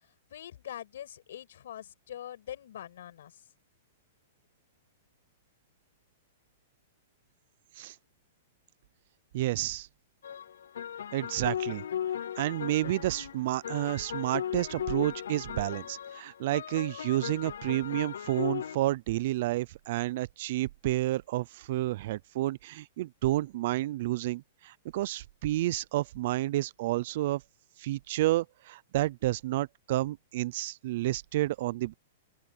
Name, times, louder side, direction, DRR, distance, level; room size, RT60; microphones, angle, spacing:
voice 1, 0.3-3.4, left 11 dB, 70° left, 6.3 m, -43 dB
voice 2, 9.3-9.9 11.1-11.9 12.4-27.4 27.8-31.9, right 16 dB, 50° right, 0.5 m, -30 dB
sound 1, 10.2-18.8, left 9 dB, 90° left, 0.4 m, -37 dB
open air
hypercardioid pair, 165°, 0 cm